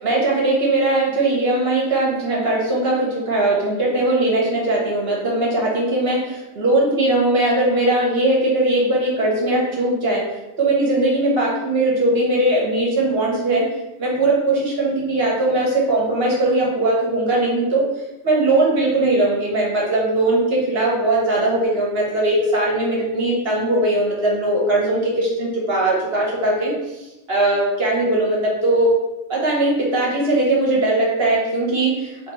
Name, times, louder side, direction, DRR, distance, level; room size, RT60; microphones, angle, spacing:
voice 1, 0.0-10.3 10.6-13.7 14.0-17.9 18.2-26.7 27.3-28.9 29.3-32.1, right 2 dB, 55° right, -4 dB, 1.3 m, -19 dB
3.3 x 2.6 x 4.5 m, 0.98 s
omnidirectional pair, 1.3 m